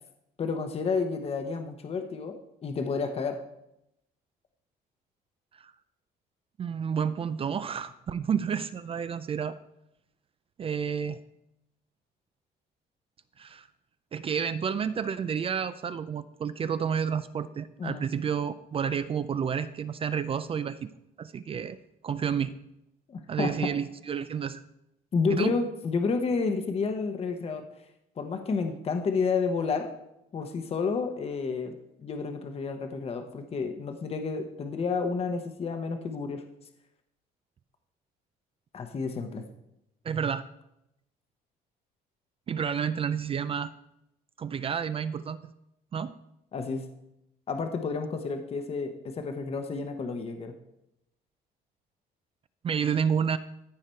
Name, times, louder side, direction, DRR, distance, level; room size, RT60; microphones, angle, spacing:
voice 1, 0.4-3.4 17.8-18.0 23.1-23.7 25.1-27.6 28.2-29.9 30.3-31.7 32.0-36.4 38.7-39.4 46.5-46.8 47.5-50.5, left 4 dB, 35° left, 6 dB, 0.9 m, -30 dB
voice 2, 6.6-9.6 10.6-11.2 13.4-13.7 14.1-20.9 21.2-21.8 22.0-22.6 23.3-24.6 25.3-25.5 40.0-40.5 42.5-43.7 44.4-45.4 45.9-46.1 52.6-53.4, right 7 dB, 35° right, 13 dB, 0.4 m, -30 dB
14.5 x 4.9 x 4.4 m, 0.84 s
cardioid pair, 110°, 17 cm